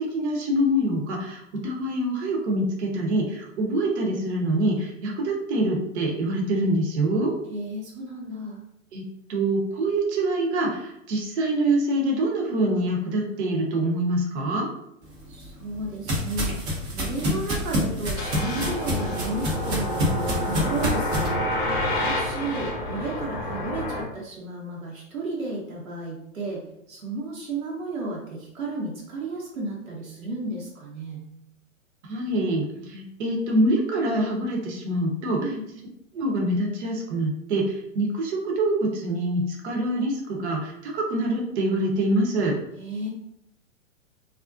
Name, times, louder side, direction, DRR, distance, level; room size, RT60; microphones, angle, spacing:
voice 1, 0.0-7.3 8.9-9.0 9.3-14.7 32.0-35.5 36.1-42.5, right 1 dB, 55° right, 0 dB, 0.8 m, -25 dB
voice 2, 7.5-8.6 15.3-16.6 16.9-21.5 22.0-31.3 35.4-35.7 42.8-43.1, right 2 dB, 85° right, -3 dB, 0.8 m, -33 dB
sound 1, 15.2-21.3, left 1 dB, 20° right, 0.5 m, -28 dB
sound 2, 18.2-24.0, left 1 dB, 25° left, 0.6 m, -29 dB
2.4 x 2.1 x 2.4 m, 0.77 s
hypercardioid pair, 120°, 40 cm